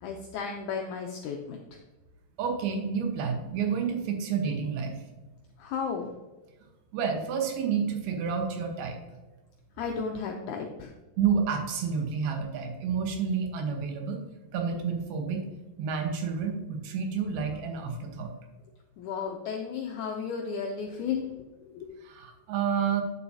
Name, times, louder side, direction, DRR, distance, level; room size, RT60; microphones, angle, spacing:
voice 1, 0.0-1.6 5.6-6.1 9.8-10.9 19.0-21.9, left 6 dB, 85° left, 2 dB, 1.7 m, -34 dB
voice 2, 2.4-5.0 6.9-9.0 11.2-14.2 14.5-15.4 15.8-18.3 22.0-23.0, right 6 dB, 90° right, 3 dB, 3.0 m, -29 dB
9.2 x 7.0 x 2.7 m, 1.1 s
omnidirectional pair, 4.3 m